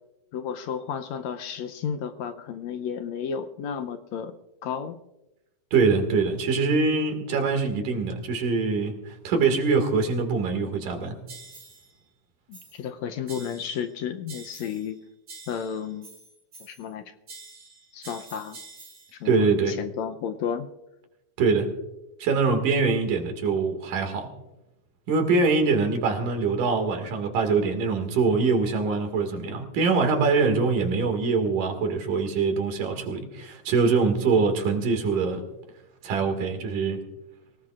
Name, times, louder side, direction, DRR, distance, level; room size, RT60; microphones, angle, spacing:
voice 1, 0.3-4.3 4.6-5.0 12.5-15.0 15.5-16.1 16.6-17.0 17.9-18.6 19.2-20.7, left 7 dB, 75° left, 8 dB, 1.8 m, -32 dB
voice 2, 5.7-11.2 19.3-19.8 21.4-21.7 22.2-24.3 25.1-35.4 36.0-37.0, right 4 dB, 85° right, 5 dB, 3.6 m, -24 dB
sound 1, 11.3-11.9 12.5-12.9 13.3-13.9 14.3-14.9 15.3-16.9 17.3-19.2, right 3 dB, 40° right, 2.8 m, -46 dB
25.5 x 18.0 x 2.5 m, 0.94 s
omnidirectional pair, 3.6 m